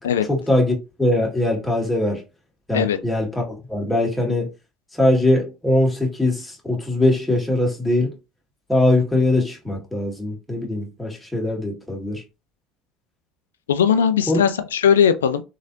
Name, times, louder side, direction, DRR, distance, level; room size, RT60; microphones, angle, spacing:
voice 1, 0.3-2.2 2.7-4.5 4.9-8.2 8.7-12.2 14.3-14.4, left 1 dB, 10° left, 1.6 m, -21 dB
voice 2, 13.7-15.4, left 8 dB, 90° left, 0.3 m, -18 dB
3.2 x 2.8 x 2.5 m
hypercardioid pair, 70°, 0 cm